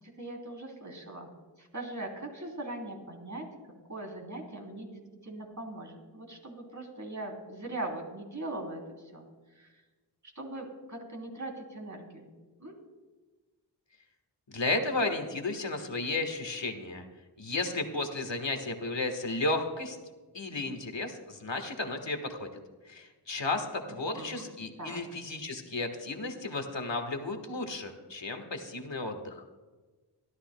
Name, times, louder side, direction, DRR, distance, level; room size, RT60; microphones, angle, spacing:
voice 1, 0.0-1.3 1.6-3.5 3.9-8.8 9.1-9.2 9.5-9.8 10.3-12.3 12.6-12.7 23.9-24.5 24.8-25.0, right 2 dB, 40° right, 1 dB, 3.2 m, -40 dB
voice 2, 14.5-17.0 17.4-20.0 20.3-22.5 22.8-29.4, left 2 dB, 85° left, 5 dB, 1.5 m, -33 dB
25.0 x 13.0 x 2.2 m, 1.3 s
wide cardioid pair, 50°, 43 cm